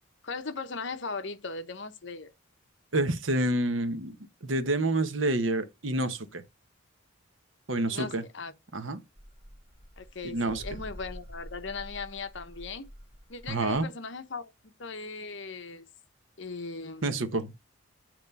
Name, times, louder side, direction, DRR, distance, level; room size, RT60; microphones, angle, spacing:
voice 1, 0.2-2.3 7.9-8.5 10.0-12.9 13.3-15.9 16.4-17.2, left 4 dB, 60° left, 1.0 m, -38 dB
voice 2, 2.9-4.2 4.4-6.4 7.7-8.2 8.7-9.0 10.2-10.6 13.5-13.9 17.0-17.5, right 2 dB, 70° right, 1.1 m, -28 dB
sound 1, 9.2-13.8, equal, 25° right, 1.1 m, -47 dB
9.0 x 3.1 x 5.3 m
head